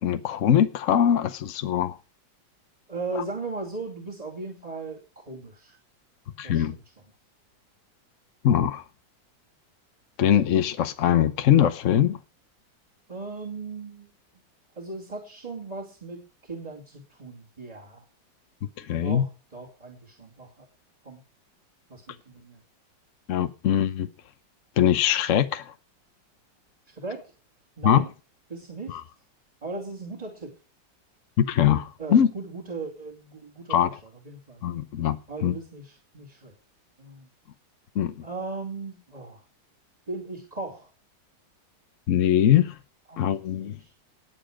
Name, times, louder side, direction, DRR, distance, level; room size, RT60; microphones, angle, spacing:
voice 1, 0.0-2.0 6.4-6.8 8.4-8.8 10.2-12.2 18.8-19.2 23.3-24.1 24.8-25.7 27.8-28.0 28.9-29.0 31.4-32.3 33.7-33.9 34.6-35.6 38.0-38.2 42.1-42.8 43.2-43.8, left 10 dB, 55° left, 0.9 m, -22 dB
voice 2, 2.9-5.8 6.4-6.8 13.1-14.1 14.7-18.0 19.0-20.7 21.0-21.2 21.9-22.6 27.0-27.3 27.8-28.1 28.5-29.0 29.6-30.6 32.0-33.9 34.2-34.6 35.3-36.5 37.0-37.3 38.2-39.4 40.1-40.9 43.1-43.4 43.8-43.9, right 3 dB, 20° right, 2.7 m, -37 dB
19.0 x 7.2 x 5.0 m
omnidirectional pair, 2.0 m